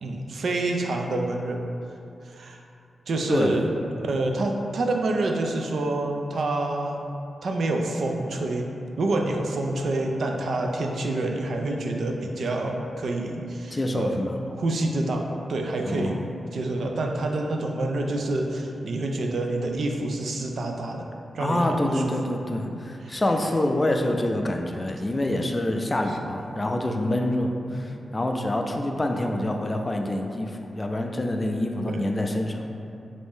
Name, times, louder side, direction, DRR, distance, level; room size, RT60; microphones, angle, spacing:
voice 1, 0.0-1.6 2.2-2.6 3.1-3.7 4.0-7.1 7.4-8.7 9.0-14.2 14.5-16.2 16.5-21.1 21.3-22.1 23.0-23.2 26.1-26.2 27.7-28.0 31.9-32.0, right 2 dB, 75° right, 2 dB, 0.3 m, -27 dB
voice 2, 3.3-3.6 13.7-14.4 15.8-16.2 21.4-32.7, left 1 dB, 30° left, 3 dB, 0.3 m, -26 dB
3.1 x 2.6 x 3.5 m, 2.7 s
cardioid pair, 70°, 0 cm